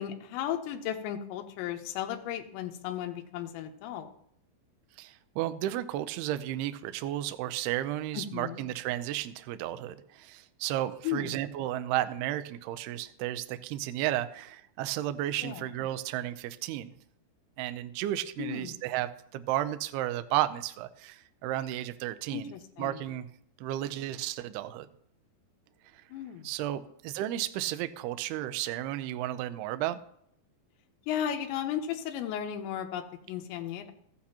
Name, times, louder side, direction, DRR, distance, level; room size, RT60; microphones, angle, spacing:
voice 1, 0.0-4.1 8.1-8.6 11.0-11.4 15.4-15.6 18.4-18.8 22.3-23.0 26.1-26.5 31.1-33.9, left 10 dB, 85° left, 4 dB, 3.0 m, -35 dB
voice 2, 5.0-16.9 17.6-22.5 22.8-23.3 23.6-24.9 26.4-30.0, right 13 dB, 85° right, 11 dB, 2.3 m, -33 dB
14.5 x 8.4 x 2.9 m, 0.69 s
omnidirectional pair, 5.2 m